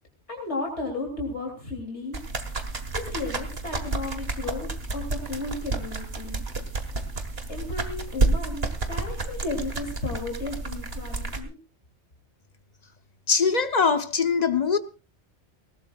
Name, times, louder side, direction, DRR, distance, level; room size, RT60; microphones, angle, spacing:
voice 1, 0.3-2.2 2.9-6.4 7.5-11.6, left 2 dB, 80° left, 3.4 m, -34 dB
sound 1, 2.1-11.4, right 3 dB, 60° right, 2.0 m, -30 dB
voice 2, 13.3-14.8, left 5 dB, 40° left, 1.0 m, -22 dB
19.5 x 19.0 x 2.4 m
omnidirectional pair, 1.1 m